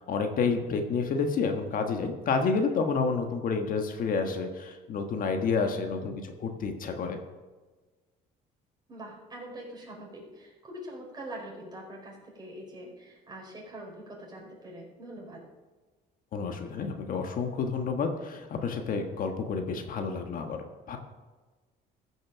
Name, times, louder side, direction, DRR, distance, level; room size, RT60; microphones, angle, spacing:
voice 1, 0.1-6.1 6.4-7.2 16.3-21.0, left 5 dB, 55° left, 5 dB, 1.4 m, -29 dB
voice 2, 8.9-15.4, right 1 dB, 25° right, -2 dB, 4.7 m, -44 dB
14.5 x 6.4 x 6.2 m, 1.3 s
cardioid pair, 110°, 17 cm